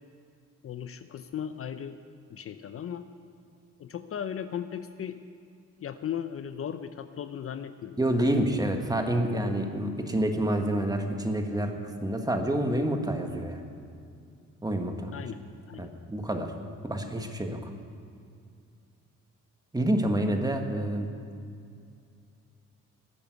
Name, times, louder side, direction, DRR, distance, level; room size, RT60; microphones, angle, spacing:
voice 1, 0.6-2.0 2.3-3.1 3.8-5.2 5.8-8.0 15.1-15.4 15.7-15.9, left 9 dB, 50° left, 11 dB, 0.6 m, -36 dB
voice 2, 8.0-13.6 14.6-15.1 15.8-16.5 16.8-17.7 19.7-21.1, right 1 dB, 10° right, 5 dB, 1.4 m, -28 dB
12.5 x 8.5 x 9.6 m, 2.4 s
cardioid pair, 90°, 30 cm